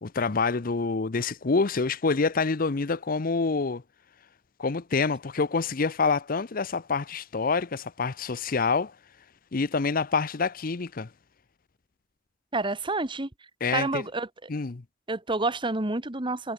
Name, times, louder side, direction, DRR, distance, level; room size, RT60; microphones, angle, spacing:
voice 1, 0.0-3.8 4.6-8.9 9.5-11.1 13.6-14.0 14.5-14.8, left 4 dB, 50° left, 0.7 m, -27 dB
voice 2, 12.5-13.3 13.7-14.5 15.1-16.5, right 2 dB, 25° right, 1.6 m, -29 dB
head